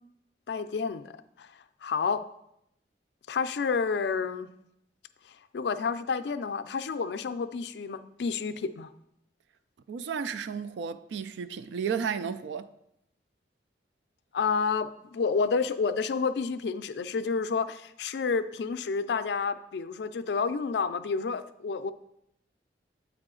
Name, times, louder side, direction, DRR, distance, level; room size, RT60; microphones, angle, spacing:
voice 1, 0.5-1.5 1.8-2.2 3.3-4.5 5.5-8.9 14.3-21.9, left 5 dB, 65° left, 0.4 m, -30 dB
voice 2, 9.9-12.7, right 6 dB, 80° right, 0.3 m, -33 dB
7.8 x 4.8 x 3.7 m
head